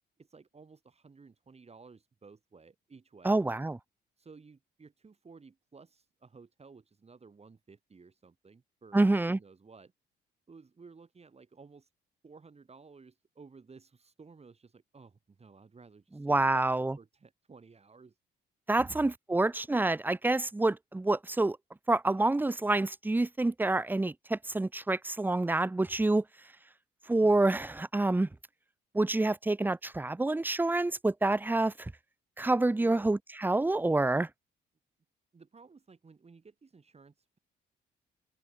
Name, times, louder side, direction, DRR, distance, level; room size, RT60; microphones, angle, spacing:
voice 1, 0.2-3.4 4.2-9.9 10.5-11.9 12.2-16.7 17.0-18.1 18.8-19.0 27.2-27.4 32.8-33.1 35.3-37.4, right 4 dB, 30° right, 6.4 m, -55 dB
voice 2, 3.2-3.8 8.9-9.4 16.2-17.0 18.7-21.6 21.9-26.2 27.1-28.3 28.9-31.9 32.4-34.3, right 2 dB, 10° right, 0.6 m, -27 dB
open air
cardioid pair, 90°, 20 cm